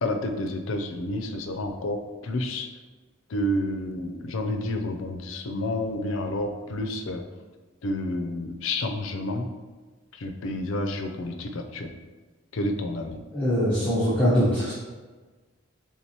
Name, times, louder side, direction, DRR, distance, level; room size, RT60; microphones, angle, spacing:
voice 1, 0.0-2.7 3.3-7.2 7.8-9.5 10.1-11.9 12.5-13.2, left 1 dB, 75° left, 5 dB, 0.5 m, -30 dB
voice 2, 13.3-14.7, equal, 10° left, -11 dB, 0.9 m, -22 dB
4.6 x 3.6 x 2.9 m, 1.3 s
head